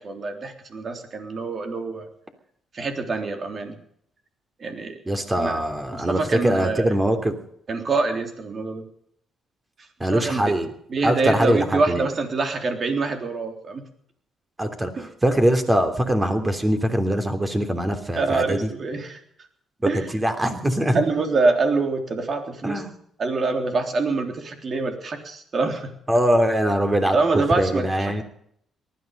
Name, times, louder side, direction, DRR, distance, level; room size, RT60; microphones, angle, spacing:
voice 1, 0.0-2.1 2.7-3.8 4.6-5.0 5.3-5.6 5.9-6.9 7.7-8.8 10.0-10.6 10.9-13.8 15.0-15.1 18.1-19.2 19.9-20.1 20.9-22.8 23.2-25.9 27.1-28.2, right 3 dB, 45° right, 5 dB, 3.5 m, -25 dB
voice 2, 5.1-7.3 10.0-10.7 11.0-12.1 14.6-18.7 19.9-21.0 22.6-22.9 26.1-27.2 27.6-28.2, equal, 20° right, 7 dB, 3.2 m, -22 dB
19.5 x 13.5 x 5.4 m, 0.68 s
cardioid pair, 90°, 0 cm